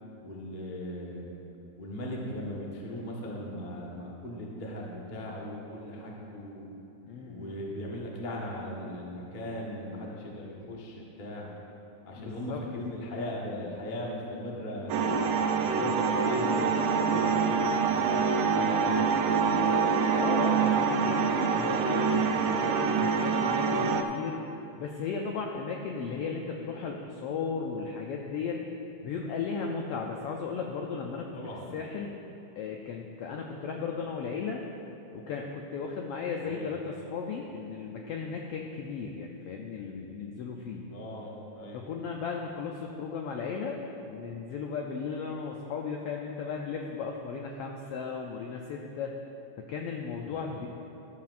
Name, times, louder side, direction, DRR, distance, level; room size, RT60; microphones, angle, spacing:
voice 1, 0.2-1.3 1.8-6.7 7.2-11.5 12.1-15.1 15.5-19.8 31.3-31.7 36.4-36.8 40.9-41.9 50.2-50.6, left 1 dB, 65° left, -3 dB, 0.4 m, -38 dB
voice 2, 7.1-7.6 12.2-12.6 20.2-24.4 24.8-28.6 29.0-31.3 31.7-32.1 32.6-34.6 35.1-40.9 41.7-43.8 44.1-49.1 49.7-50.7, left 5 dB, 85° left, 1 dB, 1.3 m, -35 dB
sound 1, 14.9-24.0, right 5 dB, 90° right, 2.1 m, -26 dB
13.0 x 12.0 x 2.5 m, 2.9 s
omnidirectional pair, 3.3 m